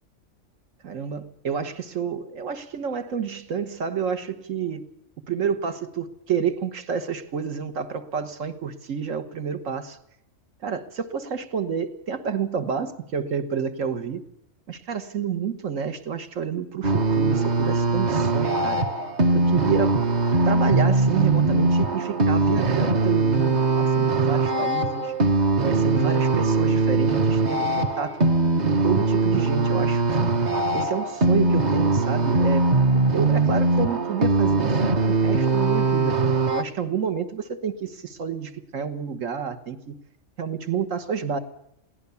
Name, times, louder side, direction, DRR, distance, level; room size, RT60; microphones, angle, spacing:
voice 1, 0.8-4.9 5.3-10.0 10.6-14.2 14.7-18.9 19.3-20.0 20.5-25.1 25.6-28.2 28.6-30.3 30.7-32.7 32.9-36.2 36.5-40.0 40.4-41.4, right 7 dB, 75° right, 10 dB, 1.8 m, -29 dB
sound 1, 16.8-36.6, right 3 dB, 35° right, 1.0 m, -21 dB
22.0 x 17.0 x 7.0 m, 0.77 s
omnidirectional pair, 1.3 m